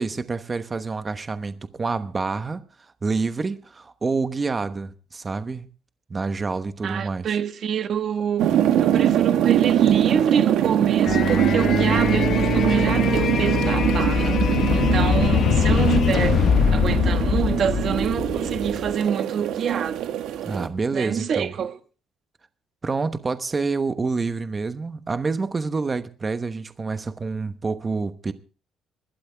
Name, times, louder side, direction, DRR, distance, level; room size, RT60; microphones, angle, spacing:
voice 1, 0.0-2.6 3.0-5.7 6.1-7.3 20.4-21.5 22.8-28.3, right 4 dB, 20° right, 1.1 m, -27 dB
voice 2, 6.8-16.4 16.7-20.0 20.9-21.8, right 8 dB, 45° right, 1.5 m, -26 dB
sound 1, 8.4-20.7, right 11 dB, 80° right, 1.6 m, -23 dB
sound 2, 11.0-18.9, left 7 dB, 45° left, 1.0 m, -22 dB
23.5 x 12.5 x 3.5 m
cardioid pair, 175°, 0 cm